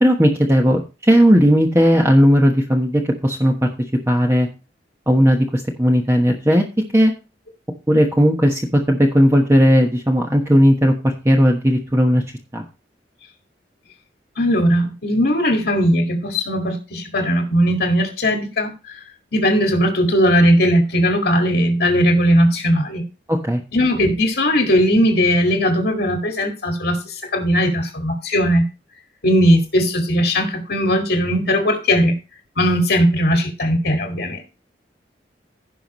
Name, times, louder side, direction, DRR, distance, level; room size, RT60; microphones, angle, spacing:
voice 1, 0.0-3.7 4.1-4.5 5.1-6.6 6.9-7.1 7.9-12.2 12.5-12.6 23.3-23.6, equal, 15° right, 1 dB, 1.2 m, -16 dB
voice 2, 14.4-19.0 19.3-23.0 23.7-28.6 29.2-32.1 32.6-34.4, equal, 65° left, 2 dB, 2.0 m, -18 dB
16.0 x 5.8 x 3.1 m, 0.30 s
head